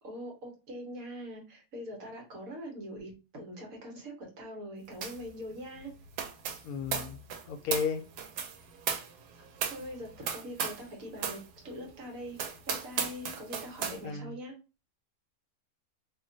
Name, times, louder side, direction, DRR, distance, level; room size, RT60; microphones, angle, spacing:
voice 1, 0.0-5.9 9.7-14.5, equal, 65° right, 1 dB, 1.4 m, -43 dB
sound 1, 5.0-5.3 5.5-10.9 11.2-11.4 11.9-12.0 12.3-14.0, right 7 dB, 85° right, 1.2 m, -36 dB
voice 2, 6.6-7.2 7.5-8.0 14.0-14.4, left 6 dB, 75° left, 7 dB, 1.0 m, -33 dB
3.0 x 2.2 x 3.8 m, 0.32 s
omnidirectional pair, 1.6 m